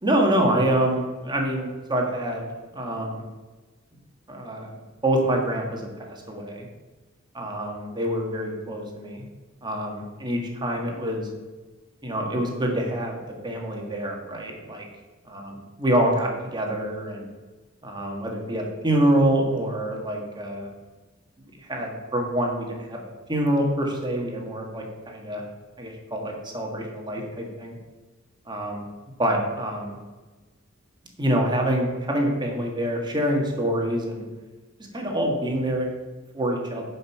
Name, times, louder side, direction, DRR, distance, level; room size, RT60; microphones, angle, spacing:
voice 1, 0.0-2.5 2.7-3.2 4.3-4.8 5.0-6.7 7.3-9.3 9.6-11.3 12.0-13.2 13.4-14.9 15.3-17.3 17.8-20.7 21.6-23.0 23.3-25.4 25.8-27.7 28.5-28.8 29.2-30.0 31.2-34.2 34.9-35.9 36.3-36.8, right 1 dB, 20° right, 0 dB, 1.7 m, -26 dB
10.5 x 5.5 x 5.8 m, 1.3 s
head